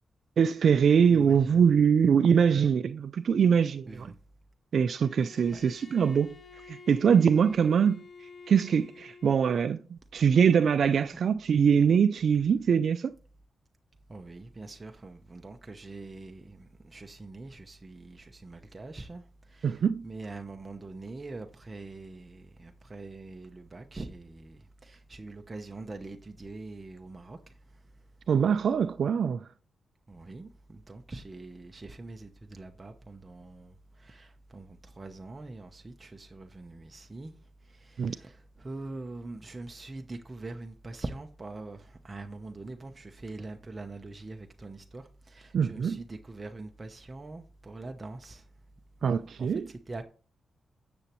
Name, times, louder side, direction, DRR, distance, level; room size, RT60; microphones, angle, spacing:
voice 1, 0.4-4.1 4.7-6.4 6.7-8.0 8.5-13.1 19.6-20.0 28.3-29.5 38.0-38.2 45.5-46.0 49.0-49.7, right 7 dB, 65° right, 0.4 m, -23 dB
voice 2, 1.1-1.6 3.9-4.1 5.5-5.6 14.1-19.2 19.5-27.5 30.1-37.3 37.7-48.4 49.0-50.0, right 2 dB, 25° right, 0.8 m, -43 dB
Bowed string instrument, 4.9-9.7, left 4 dB, 45° left, 0.7 m, -50 dB
9.8 x 7.1 x 3.0 m
cardioid pair, 95°, 0 cm